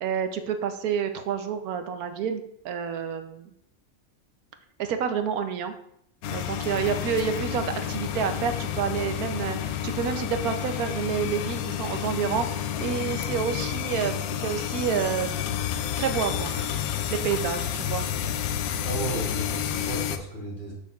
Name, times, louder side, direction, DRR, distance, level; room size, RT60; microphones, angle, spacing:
voice 1, 0.0-3.5 4.8-5.7 6.3-15.4 16.0-16.7 17.1-18.0, right 7 dB, 85° right, 7 dB, 1.2 m, -29 dB
sound 1, 6.2-20.2, left 10 dB, 80° left, 1.0 m, -30 dB
voice 2, 18.8-20.7, right 2 dB, 65° left, -5 dB, 3.3 m, -34 dB
7.9 x 6.8 x 2.4 m, 0.74 s
omnidirectional pair, 1.5 m